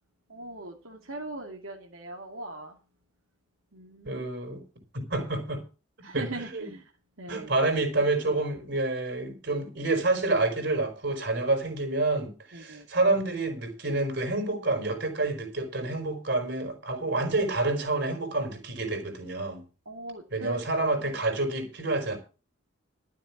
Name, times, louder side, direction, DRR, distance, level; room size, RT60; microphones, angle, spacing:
voice 1, 0.3-2.8 3.7-4.3 5.1-5.3 6.0-6.8 7.2-7.5 12.5-12.9 19.9-20.6 21.0-21.3, right 2 dB, 90° right, 2.5 m, -40 dB
voice 2, 4.0-4.6 4.9-5.6 6.0-6.7 7.3-19.6 20.3-22.2, right 2 dB, 55° right, 4.5 m, -28 dB
13.0 x 7.5 x 7.2 m
head